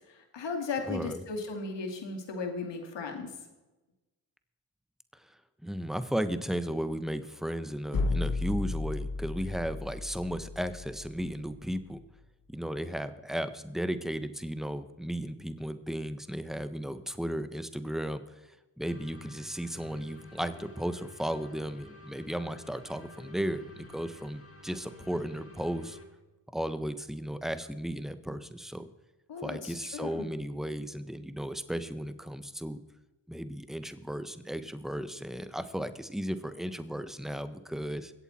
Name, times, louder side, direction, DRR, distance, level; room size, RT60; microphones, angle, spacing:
voice 1, 0.3-3.3 29.3-30.3, left 4 dB, 80° left, 4 dB, 2.5 m, -36 dB
voice 2, 0.9-1.2 5.1-5.2 5.6-12.0 12.5-18.2 18.8-26.0 26.5-28.9 29.4-32.8 33.3-38.1, equal, ahead, 11 dB, 1.3 m, -35 dB
sound 1, 7.9-11.8, left 3 dB, 55° left, 1.5 m, -34 dB
sound 2, 18.8-26.0, left 2 dB, 30° left, 4.1 m, -52 dB
22.0 x 8.2 x 4.4 m, 1.1 s
supercardioid pair, 45°, 43 cm